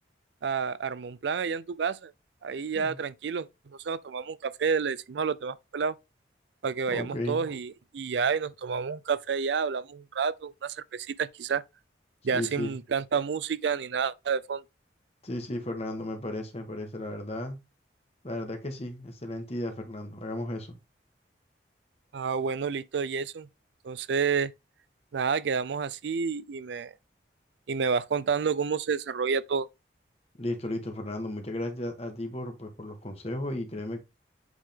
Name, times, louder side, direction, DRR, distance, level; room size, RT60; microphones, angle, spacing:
voice 1, 0.4-2.1 2.4-3.5 3.8-6.0 6.6-11.6 12.2-14.6 22.1-23.5 23.8-24.5 25.1-26.9 27.7-29.7, right 6 dB, 70° right, 0.4 m, -29 dB
voice 2, 6.9-7.4 12.3-12.7 15.2-17.6 18.2-20.8 30.4-34.0, left 1 dB, 35° left, 1.3 m, -34 dB
8.1 x 3.6 x 3.5 m
head